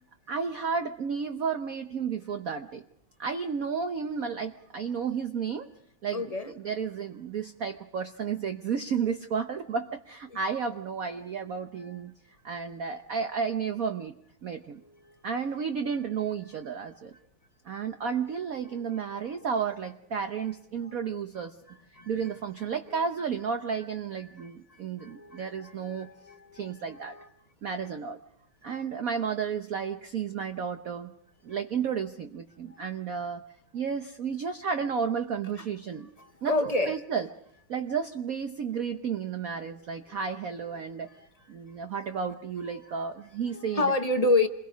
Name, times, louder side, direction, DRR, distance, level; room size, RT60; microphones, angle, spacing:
voice 1, 0.3-2.8 3.2-5.7 6.0-12.1 12.4-14.1 14.4-14.8 15.2-17.1 17.6-21.6 22.1-26.1 26.5-27.2 27.6-28.2 28.6-31.1 31.4-33.4 33.7-36.1 36.4-37.3 37.7-41.1 41.5-43.8, right 6 dB, 55° right, 7 dB, 1.1 m, -32 dB
voice 2, 6.1-6.5 10.3-10.4 11.8-12.0 14.8-15.2 18.7-19.0 20.2-20.4 20.8-20.9 22.0-22.3 22.9-23.0 24.2-27.3 32.7-32.8 36.2-37.0 40.1-40.2 42.8-43.1 43.5-44.5, left 2 dB, 45° left, 7 dB, 0.5 m, -30 dB
28.5 x 22.0 x 5.2 m, 0.77 s
omnidirectional pair, 2.4 m